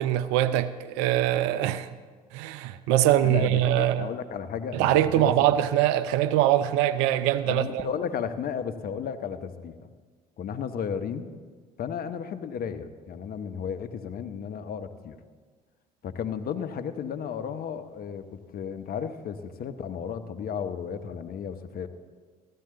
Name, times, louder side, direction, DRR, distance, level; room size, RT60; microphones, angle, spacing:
voice 1, 0.0-1.9 2.3-4.1 4.7-7.9, right 12 dB, 75° right, 0.6 m, -23 dB
voice 2, 3.2-5.6 7.5-9.8 10.4-11.3 11.8-15.2 16.0-21.9, left 7 dB, 50° left, 0.9 m, -34 dB
15.0 x 13.0 x 3.8 m
hypercardioid pair, 60°, 19 cm